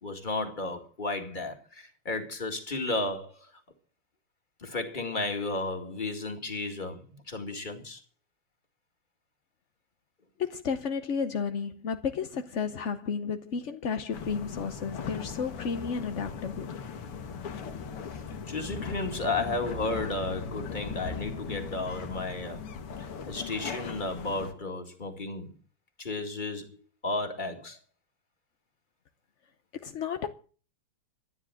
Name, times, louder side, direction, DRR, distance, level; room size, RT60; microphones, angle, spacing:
voice 1, 0.0-3.5 4.6-8.0 18.5-22.6 23.3-25.5 26.0-26.7 27.0-27.8, left 2 dB, 20° left, 2.2 m, -33 dB
voice 2, 10.4-16.7 29.8-30.3, left 6 dB, 55° left, 0.8 m, -32 dB
sound 1, 14.1-24.5, left 5 dB, 85° left, 2.5 m, -38 dB
13.5 x 9.9 x 7.6 m
omnidirectional pair, 2.4 m